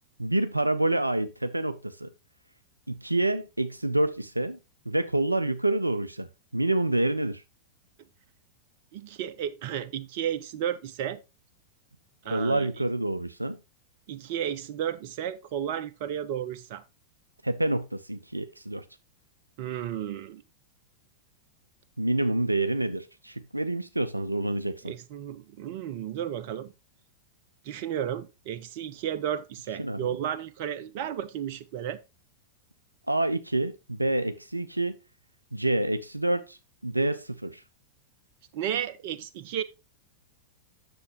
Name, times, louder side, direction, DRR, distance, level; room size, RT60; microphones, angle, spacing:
voice 1, 0.2-2.1 2.9-4.6 4.9-6.3 6.5-7.4 12.3-13.6 17.4-18.8 22.0-24.9 29.8-30.2 33.1-35.0 35.5-37.6, right 1 dB, 85° right, 0.5 m, -27 dB
voice 2, 8.9-11.2 12.2-12.7 14.1-16.8 19.6-20.4 24.8-26.7 27.6-32.0 38.5-39.6, right 10 dB, 45° right, 0.8 m, -33 dB
9.8 x 6.9 x 2.9 m
figure-of-eight pair, 95°, 0 cm